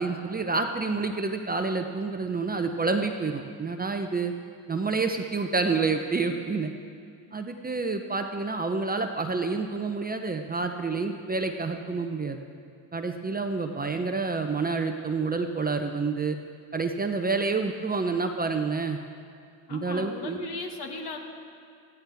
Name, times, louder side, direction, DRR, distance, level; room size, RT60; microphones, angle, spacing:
voice 1, 0.0-4.3 4.7-6.7 7.3-12.4 12.9-16.4 16.7-19.0 19.7-20.4, right 4 dB, 20° right, 5 dB, 0.7 m, -28 dB
voice 2, 19.7-21.2, left 3 dB, 55° left, 3 dB, 2.0 m, -36 dB
15.5 x 15.0 x 3.5 m, 2.2 s
supercardioid pair, 80°, 47 cm